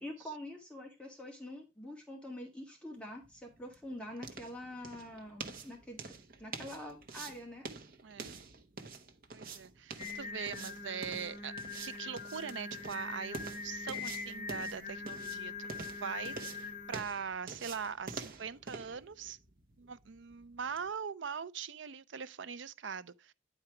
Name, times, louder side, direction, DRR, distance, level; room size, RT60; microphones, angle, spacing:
voice 1, 0.0-6.0 6.4-7.7, left 1 dB, 5° left, 1.7 m, -45 dB
sound 1, 3.1-20.9, right 4 dB, 45° right, 1.0 m, -48 dB
voice 2, 8.0-8.4 9.3-11.5 11.8-19.4 19.8-23.3, right 6 dB, 65° right, 0.5 m, -42 dB
Singing, 10.0-17.0, left 4 dB, 35° left, 1.3 m, -42 dB
9.9 x 4.5 x 4.8 m
head